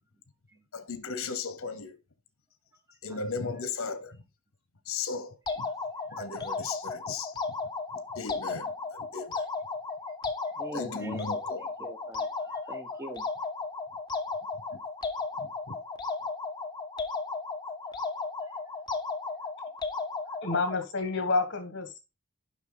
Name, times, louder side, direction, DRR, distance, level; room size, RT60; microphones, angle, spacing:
voice 1, 0.7-1.9 3.0-4.2 4.9-5.7 6.1-7.3 8.1-9.4 10.7-11.6 15.4-15.5, left 4 dB, 70° left, 0.9 m, -36 dB
voice 2, 3.1-3.7 6.1-6.3 10.5-13.3 17.9-18.5 19.1-19.4, right 1 dB, 15° right, 0.8 m, -45 dB
sound 1, 5.5-20.8, left 4 dB, 20° left, 0.7 m, -35 dB
voice 3, 20.4-22.0, left 3 dB, 55° left, 1.6 m, -29 dB
7.2 x 5.6 x 3.8 m
head